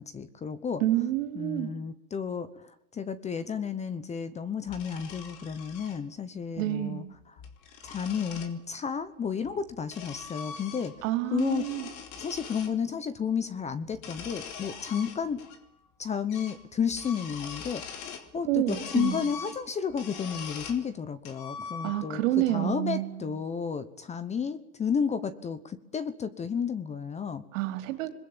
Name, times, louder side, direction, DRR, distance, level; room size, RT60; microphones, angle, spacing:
voice 1, 0.0-0.8 1.3-7.4 7.8-10.9 11.3-11.7 12.2-15.4 16.0-27.4, left 7 dB, 15° left, 1.0 m, -32 dB
voice 2, 0.8-1.7 6.6-7.0 11.0-11.9 18.5-19.2 21.8-23.3 27.5-28.1, right 14 dB, 60° right, 4.1 m, -28 dB
sound 1, 4.7-6.0 7.2-8.5 9.4-11.1 11.3-12.7 13.9-15.6 15.9-16.0 16.3-16.6 16.9-18.3 18.7-20.8 21.2-22.2, left 6 dB, 45° left, 3.6 m, -42 dB
27.0 x 21.5 x 9.1 m
supercardioid pair, 135°, 42 cm